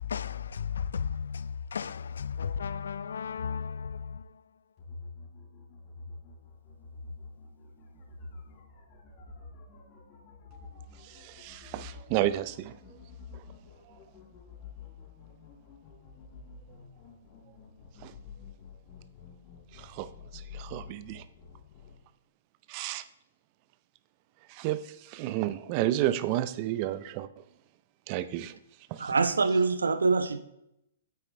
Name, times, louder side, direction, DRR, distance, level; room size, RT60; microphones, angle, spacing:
voice 1, 0.0-4.4, left 7 dB, 75° left, 0.4 m, -34 dB
sound 1, 4.8-22.0, left 4 dB, 40° left, 3.5 m, -48 dB
voice 2, 11.1-12.8 18.0-18.1 19.7-20.1 20.3-21.2 22.7-23.0 24.5-24.8 25.1-27.3 28.1-28.6 28.9-29.1, right 13 dB, 40° right, 0.6 m, -31 dB
voice 3, 29.0-30.4, right 4 dB, 85° right, 0.8 m, -25 dB
9.3 x 8.2 x 3.4 m
hypercardioid pair, 125°, 0 cm